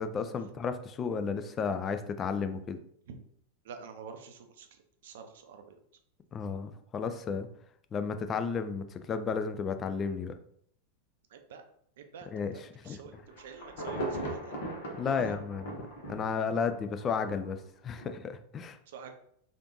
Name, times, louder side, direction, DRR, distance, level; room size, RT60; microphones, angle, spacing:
voice 1, 0.0-2.8 6.3-7.5 7.9-10.3 12.3-12.5 12.8-13.0 15.0-15.8 16.1-17.6 17.8-18.8, left 5 dB, 25° left, 9 dB, 0.3 m, -33 dB
voice 2, 3.6-5.8 11.3-11.6 12.0-14.6 15.0-15.4 18.9-19.1, right 6 dB, 55° right, 6 dB, 0.5 m, -48 dB
Insect / Thunder / Rain, 13.1-17.5 18.0-18.1, right 1 dB, 55° left, 0.9 m, -38 dB
3.2 x 2.5 x 3.0 m, 0.68 s
figure-of-eight pair, 90°, 0 cm